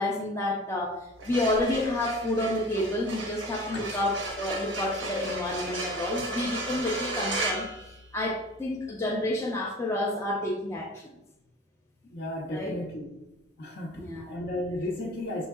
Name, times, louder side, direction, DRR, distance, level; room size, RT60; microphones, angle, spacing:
voice 1, 0.0-7.7 8.1-11.1 12.5-12.8 14.0-14.4, left 1 dB, 15° left, -3 dB, 0.5 m, -29 dB
sound 1, 1.1-8.5, right 2 dB, 85° right, 1.0 m, -35 dB
voice 2, 12.0-13.2 13.6-15.5, left 1 dB, 55° left, -4 dB, 0.7 m, -34 dB
6.3 x 3.5 x 2.3 m, 0.91 s
head